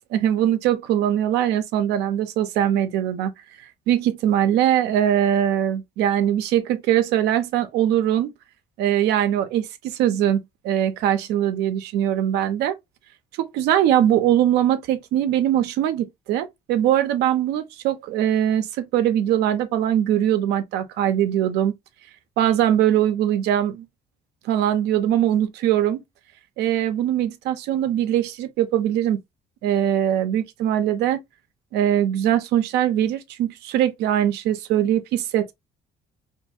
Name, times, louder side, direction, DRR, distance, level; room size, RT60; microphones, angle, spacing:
voice 1, 0.1-3.3 3.9-8.3 8.8-12.8 13.4-21.7 22.4-23.8 24.4-26.0 26.6-29.2 29.6-31.2 31.7-35.5, right 11 dB, 85° right, 0.5 m, -21 dB
2.5 x 2.4 x 2.6 m
cardioid pair, 110°, 17 cm